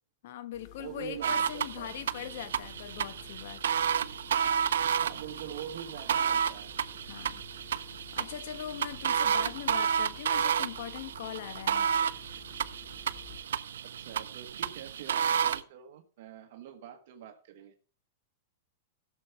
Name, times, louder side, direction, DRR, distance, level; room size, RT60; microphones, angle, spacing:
voice 1, 0.2-3.6 7.1-7.4 7.7-11.9, left 11 dB, 60° left, 1.2 m, -41 dB
sound 1, 0.5-13.4, left 9 dB, 30° left, 2.5 m, -53 dB
voice 2, 0.8-2.0 5.0-6.7 13.8-17.7, right 10 dB, 60° right, 1.3 m, -45 dB
sound 2, 1.2-15.6, right 8 dB, 90° right, 0.7 m, -31 dB
15.0 x 7.0 x 4.5 m
supercardioid pair, 145°, 0 cm